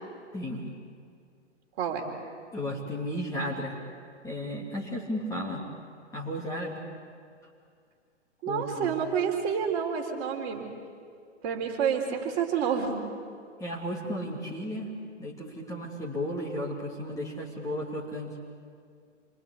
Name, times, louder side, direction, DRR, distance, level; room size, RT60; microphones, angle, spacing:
voice 1, 0.3-0.6 2.5-3.8 4.2-5.6 6.1-6.8 8.5-8.9 13.6-14.9 15.2-18.4, equal, 10° left, -3 dB, 3.0 m, -34 dB
voice 2, 8.4-10.6 11.4-13.1, right 7 dB, 30° right, 1 dB, 3.9 m, -29 dB
28.0 x 24.0 x 8.4 m, 2.2 s
figure-of-eight pair, 125°, 36 cm